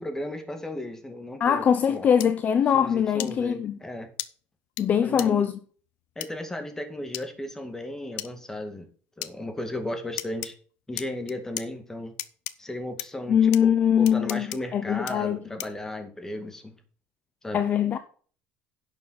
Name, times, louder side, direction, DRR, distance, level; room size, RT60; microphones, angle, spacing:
voice 1, 0.0-2.1 2.7-4.1 5.0-5.5 6.2-8.9 9.2-10.5 10.9-12.1 12.6-16.8 17.4-17.6, left 1 dB, 10° left, 2.1 m, -35 dB
voice 2, 1.4-3.8 4.8-5.5 13.3-15.4 17.5-18.0, left 8 dB, 40° left, 0.8 m, -22 dB
sound 1, 2.2-2.3 3.2-3.3 4.2-4.3 4.8-4.9 5.2-5.3 6.2-6.3 7.1-7.3 8.2-8.3 9.2-9.3 10.2-10.5 11.0-11.7 12.2-12.5 13.0-13.1 13.5-13.6 14.1-14.6 15.1-15.2 15.6-15.8, left 16 dB, 90° left, 0.8 m, -34 dB
11.0 x 7.3 x 4.1 m
cardioid pair, 130°, 5 cm